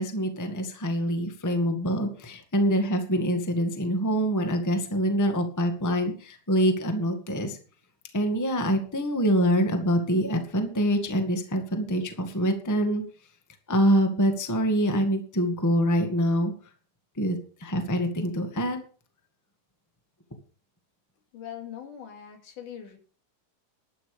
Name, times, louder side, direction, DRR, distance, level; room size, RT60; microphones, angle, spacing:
voice 1, 0.0-7.6 8.1-13.0 13.7-16.5 17.2-18.8, equal, 10° left, 5 dB, 1.2 m, -25 dB
voice 2, 21.3-23.0, left 9 dB, 75° left, 4 dB, 3.8 m, -41 dB
12.0 x 11.0 x 5.1 m, 0.42 s
omnidirectional pair, 3.7 m